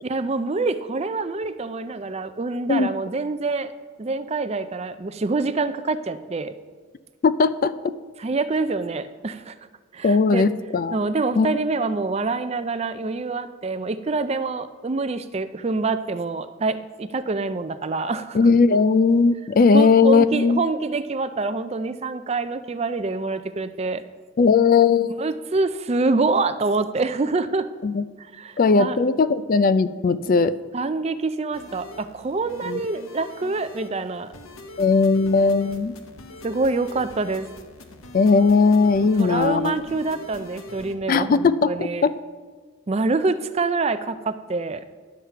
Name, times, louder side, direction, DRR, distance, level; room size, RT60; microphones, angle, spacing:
voice 1, 0.0-3.7 4.0-6.5 8.2-9.6 9.9-10.5 10.9-18.4 19.7-24.0 25.2-27.7 28.2-29.0 30.7-34.3 36.4-37.5 39.0-42.1 42.9-44.9, right 3 dB, 30° right, 12 dB, 0.4 m, -26 dB
voice 2, 7.2-7.8 10.0-11.0 11.4-11.5 18.3-20.6 24.4-25.1 27.8-28.0 28.6-30.6 32.7-32.8 34.8-35.9 38.1-39.8 41.1-42.1, left 4 dB, 40° left, 13 dB, 0.3 m, -18 dB
sound 1, 31.5-40.9, left 1 dB, 75° left, 1.0 m, -43 dB
11.0 x 7.4 x 5.6 m, 1.4 s
head